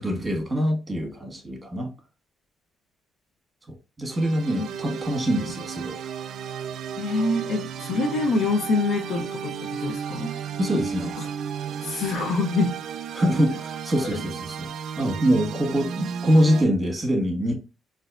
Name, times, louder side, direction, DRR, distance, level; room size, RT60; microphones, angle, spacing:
voice 1, 0.0-1.9 3.7-6.0 10.6-11.1 13.1-14.7 15.0-17.5, equal, 20° right, 1.4 m, -24 dB
sound 1, 4.1-16.7, right 7 dB, 70° right, 0.3 m, -34 dB
voice 2, 7.0-9.5 9.8-10.4 11.8-12.8, left 3 dB, 75° left, 0.6 m, -25 dB
4.1 x 2.6 x 2.5 m
cardioid pair, 90°, 0 cm